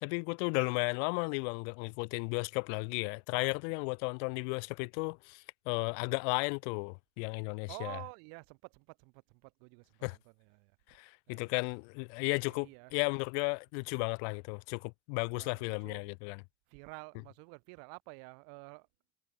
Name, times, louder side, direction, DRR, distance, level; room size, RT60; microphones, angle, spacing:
voice 1, 0.0-8.0 10.0-10.2 10.9-16.4, left 40 dB or more, 80° left, 0.5 m, -34 dB
voice 2, 7.7-10.8 11.3-11.5 12.5-12.9 15.4-16.0 16.7-18.9, right 40 dB or more, 80° right, 2.3 m, -50 dB
supercardioid pair, 85°, 33 cm